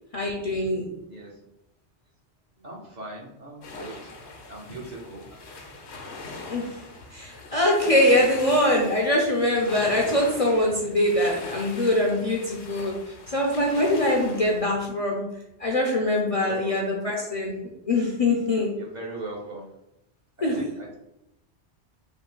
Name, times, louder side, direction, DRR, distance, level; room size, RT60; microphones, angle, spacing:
voice 1, 0.1-0.8 6.5-6.8 7.1-12.9 13.3-15.2 15.6-17.5 17.9-18.7 20.4-20.6, left 1 dB, 45° left, -2 dB, 0.5 m, -23 dB
voice 2, 2.6-4.1 4.5-5.2 16.3-16.8 18.5-19.7 20.4-21.0, right 2 dB, 45° right, -2 dB, 0.8 m, -39 dB
sound 1, 3.6-14.7, left 3 dB, 80° left, 1.0 m, -41 dB
3.8 x 2.6 x 3.8 m, 0.85 s
omnidirectional pair, 1.1 m